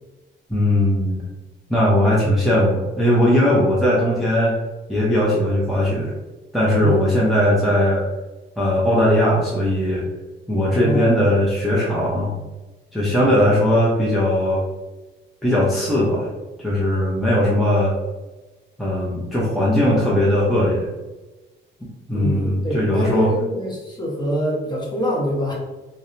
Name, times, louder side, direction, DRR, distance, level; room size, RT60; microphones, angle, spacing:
voice 1, 0.5-1.2 1.7-4.6 4.9-6.1 6.5-8.0 8.6-10.1 10.5-12.3 12.9-14.6 15.4-16.3 16.6-17.9 18.8-20.9 21.8-23.3, left 1 dB, ahead, -7 dB, 0.5 m, -19 dB
voice 2, 10.7-11.2 22.1-25.5, equal, 20° left, -4 dB, 0.9 m, -25 dB
2.7 x 2.1 x 2.5 m, 1.1 s
cardioid pair, 90°, 20 cm